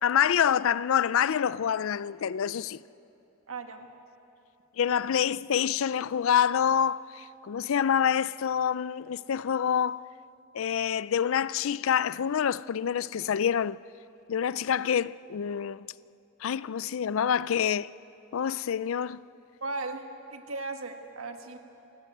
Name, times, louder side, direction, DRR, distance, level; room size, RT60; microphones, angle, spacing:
voice 1, 0.0-2.8 4.8-10.0 10.5-13.8 14.3-15.9 16.4-17.9 18.3-19.2, left 8 dB, 70° left, 0.4 m, -27 dB
voice 2, 3.5-3.9 19.6-21.6, right 3 dB, 80° right, 1.7 m, -37 dB
28.0 x 16.0 x 7.9 m
head